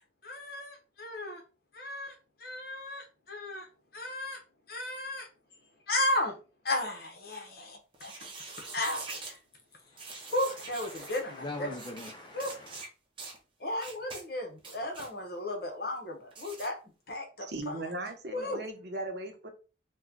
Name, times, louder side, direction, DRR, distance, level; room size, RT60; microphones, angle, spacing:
voice 1, 0.2-1.4 1.7-2.1 2.4-3.7 3.9-4.4 4.7-5.3 5.9-6.4 6.6-8.1 8.7-9.4 10.3-11.7 12.3-12.5 13.6-16.7 17.1-17.7 18.3-18.6, left 1 dB, 55° left, 2 dB, 1.0 m, -34 dB
sound 1, 7.9-9.4 10.0-11.2 11.7-12.1 12.4-12.9 13.2-13.4 13.8-14.2 14.6-15.1 16.3-16.7, right 3 dB, 25° right, 0.7 m, -44 dB
voice 2, 9.8-12.8, left 2 dB, 25° left, 1 dB, 0.4 m, -43 dB
voice 3, 17.4-19.5, right 2 dB, 60° right, 4 dB, 0.7 m, -38 dB
3.1 x 2.2 x 3.7 m, 0.34 s
head